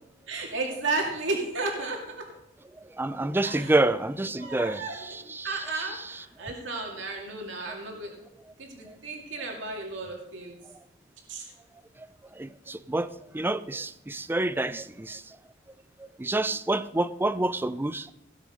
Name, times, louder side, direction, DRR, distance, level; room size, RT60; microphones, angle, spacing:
voice 1, 0.3-2.3 3.4-3.8 4.4-5.0 5.4-8.1 8.6-10.6 11.3-11.5, right 3 dB, 70° right, 0 dB, 2.4 m, -33 dB
voice 2, 3.0-5.6 12.4-13.1 13.3-15.2 16.2-18.1, right 2 dB, 10° right, 14 dB, 0.4 m, -28 dB
17.5 x 6.6 x 5.0 m, 0.94 s
head